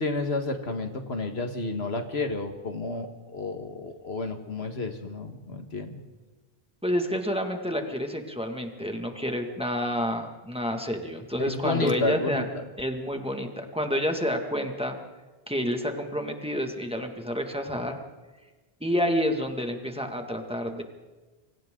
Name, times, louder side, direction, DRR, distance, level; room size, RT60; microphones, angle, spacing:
voice 1, 0.0-3.1 3.3-6.0 11.4-12.5, left 3 dB, 85° left, 6 dB, 1.9 m, -31 dB
voice 2, 6.8-12.4 12.8-15.0 15.5-18.0 18.8-20.8, equal, 5° right, 3 dB, 2.0 m, -29 dB
27.5 x 24.5 x 3.8 m, 1.2 s
omnidirectional pair, 1.0 m